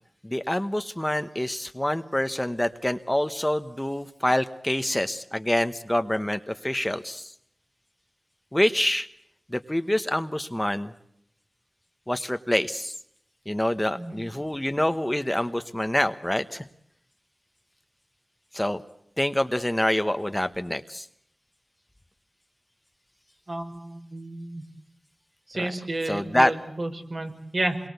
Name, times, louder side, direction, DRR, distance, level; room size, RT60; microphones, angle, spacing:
voice 1, 0.2-7.3 8.5-9.1 9.5-10.9 12.1-12.9 13.5-16.6 18.5-18.8 19.2-21.1 25.6-25.7 26.1-26.5, left 1 dB, 10° left, 9 dB, 1.1 m, -26 dB
voice 2, 23.5-24.6 25.5-27.8, right 2 dB, 55° right, 3 dB, 5.7 m, -31 dB
28.0 x 23.0 x 8.2 m, 0.72 s
wide cardioid pair, 85°, 0 cm